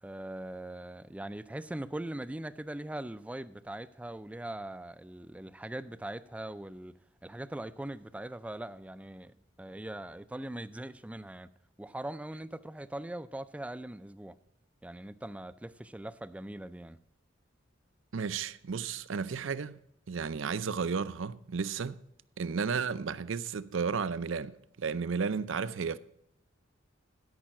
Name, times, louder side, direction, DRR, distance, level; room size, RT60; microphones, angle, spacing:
voice 1, 0.0-7.0 7.2-9.3 9.6-11.5 11.8-14.3 14.8-17.0, right 1 dB, 5° right, 0.3 m, -41 dB
voice 2, 18.1-19.8 20.1-22.0 22.4-26.0, right 5 dB, 75° right, 0.5 m, -33 dB
13.0 x 5.6 x 6.0 m
head